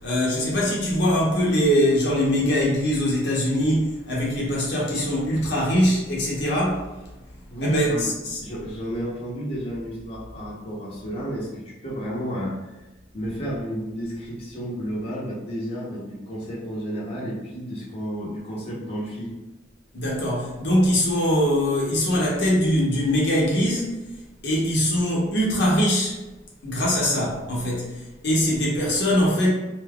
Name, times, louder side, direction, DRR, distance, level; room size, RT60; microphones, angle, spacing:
voice 1, 0.0-6.9 7.6-8.4 19.9-24.0 24.4-26.2 26.6-28.0 28.2-29.5, equal, 60° left, -4 dB, 0.8 m, -22 dB
voice 2, 7.5-8.1 8.4-12.9 13.1-19.3, equal, 30° left, -7 dB, 0.8 m, -31 dB
2.6 x 2.3 x 3.5 m, 1.1 s
head